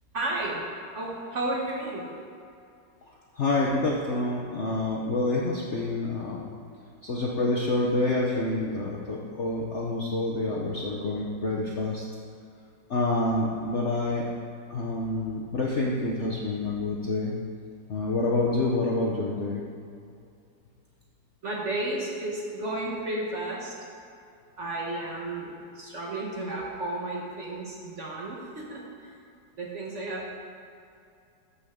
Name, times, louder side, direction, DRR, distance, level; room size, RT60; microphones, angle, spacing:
voice 1, 0.1-0.6 0.9-2.1 21.4-23.7 24.6-29.1 29.6-30.3, right 2 dB, 45° right, -3 dB, 1.2 m, -33 dB
voice 2, 3.4-6.5 7.0-12.0 12.9-14.3 14.7-17.3 17.9-19.6, left 2 dB, 55° left, -3 dB, 0.8 m, -27 dB
13.5 x 5.5 x 3.6 m, 2.5 s
omnidirectional pair, 2.0 m